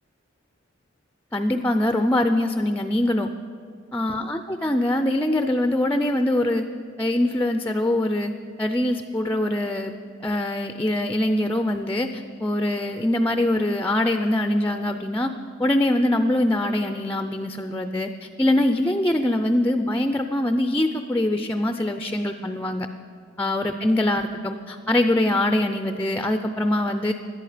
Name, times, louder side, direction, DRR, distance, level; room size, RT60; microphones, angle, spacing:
voice 1, 1.3-3.3 3.9-6.7 7.0-8.3 8.6-9.9 10.2-15.3 15.6-22.9 23.4-27.1, left 1 dB, 10° left, 7 dB, 0.4 m, -23 dB
17.5 x 11.0 x 5.0 m, 2.3 s
head